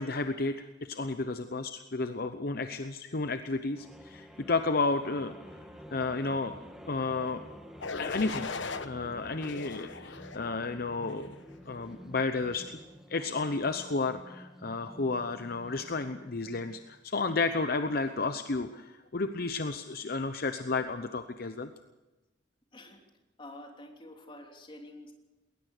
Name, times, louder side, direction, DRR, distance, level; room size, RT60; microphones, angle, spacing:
voice 1, 0.0-5.3 5.9-6.5 6.8-7.4 7.9-8.5 8.8-11.3 11.7-12.8 13.1-21.7, left 3 dB, 55° left, 9 dB, 0.8 m, -32 dB
sound 1, 3.7-16.9, equal, ahead, 1.8 m, -50 dB
sound 2, 7.8-8.9 9.4-10.4 11.0-11.4, left 4 dB, 75° left, 1.2 m, -38 dB
voice 2, 23.4-25.1, left 1 dB, 25° left, 2 dB, 3.3 m, -48 dB
20.5 x 19.5 x 6.6 m, 1.1 s
head